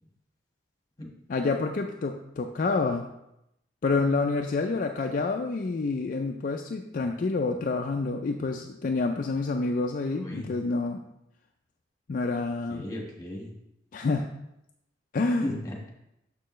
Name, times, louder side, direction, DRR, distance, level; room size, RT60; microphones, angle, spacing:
voice 1, 1.3-3.1 3.8-11.0 12.1-12.9 13.9-14.4 15.1-15.5, left 3 dB, 50° left, 3 dB, 0.4 m, -28 dB
voice 2, 12.7-13.5 15.4-15.9, left 1 dB, 20° left, -1 dB, 1.5 m, -35 dB
6.7 x 6.5 x 3.1 m, 0.84 s
head